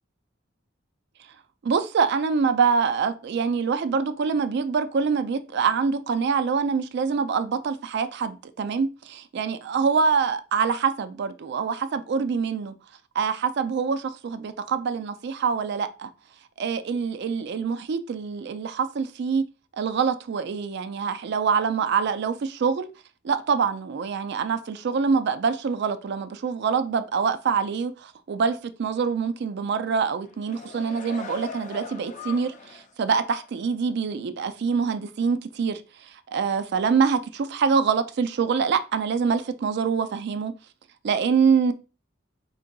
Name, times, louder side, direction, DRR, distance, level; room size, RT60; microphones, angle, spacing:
voice 1, 1.6-12.7 13.2-16.1 16.6-19.4 19.8-22.9 23.2-35.8 36.3-40.5 41.0-41.7, right 5 dB, 55° right, 0.4 m, -25 dB
sound 1, 30.2-32.9 33.3-33.5, left 4 dB, 40° left, 0.5 m, -40 dB
3.9 x 3.6 x 2.2 m
head